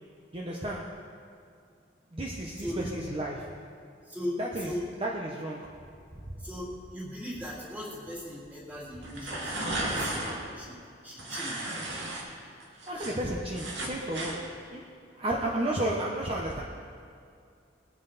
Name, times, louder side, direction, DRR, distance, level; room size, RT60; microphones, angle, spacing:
voice 1, 0.3-1.0 2.1-3.6 4.4-4.7 5.0-5.7 6.1-6.2 12.9-14.9 15.1-16.6, right 1 dB, 30° right, -2 dB, 1.0 m, -33 dB
voice 2, 2.6-2.9 4.1-4.9 6.4-10.2 10.6-10.8 11.0-11.7, left 1 dB, 10° right, -6 dB, 3.1 m, -38 dB
sound 1, 9.0-10.4 11.2-12.2 12.6-14.4, right 1 dB, 75° right, 2.3 m, -34 dB
21.0 x 9.2 x 4.2 m, 2.4 s
head